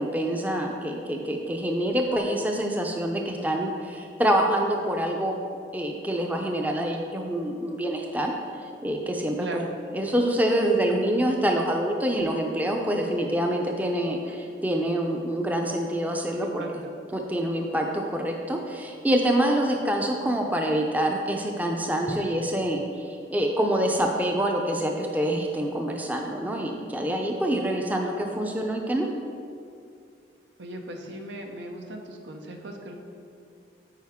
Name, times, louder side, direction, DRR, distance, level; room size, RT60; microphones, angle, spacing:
voice 1, 0.0-5.4 5.7-9.6 9.9-16.6 17.1-29.1, right 1 dB, 10° right, 2 dB, 0.4 m, -26 dB
voice 2, 16.3-16.9 30.6-33.0, right 1 dB, 90° right, 4 dB, 0.8 m, -38 dB
9.0 x 4.9 x 3.6 m, 2.4 s
head